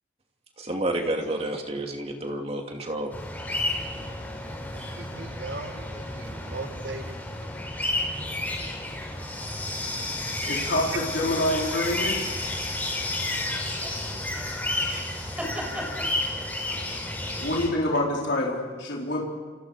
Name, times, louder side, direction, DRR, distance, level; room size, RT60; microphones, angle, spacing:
voice 1, 0.6-3.1, right 1 dB, 30° right, 2 dB, 2.6 m, -30 dB
sound 1, 3.1-17.7, left 2 dB, 10° left, 4.1 m, -31 dB
voice 2, 3.8-4.3 4.7-7.2 10.7-11.0, right 3 dB, 65° right, 5 dB, 2.1 m, -39 dB
voice 3, 10.4-12.2 17.4-19.2, left 1 dB, 65° left, -3 dB, 4.1 m, -26 dB
voice 4, 13.7-14.6 14.8-16.5, equal, 5° right, -1 dB, 6.5 m, -38 dB
29.5 x 29.0 x 5.0 m, 1.5 s
head